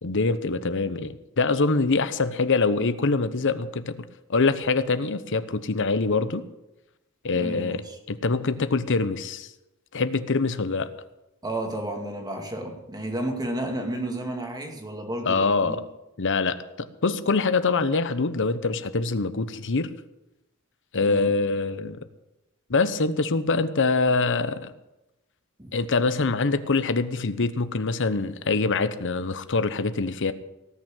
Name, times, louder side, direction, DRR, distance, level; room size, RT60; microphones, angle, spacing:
voice 1, 0.0-4.0 4.3-6.4 7.2-7.8 8.1-9.5 9.9-10.9 15.3-15.8 16.2-19.9 20.9-22.0 22.7-24.7 25.7-30.3, left 3 dB, 60° left, 12 dB, 0.9 m, -24 dB
voice 2, 7.3-8.0 11.4-15.8 20.9-21.3 25.6-25.7, right 1 dB, 20° right, 3 dB, 2.2 m, -32 dB
18.0 x 6.4 x 9.0 m, 0.94 s
head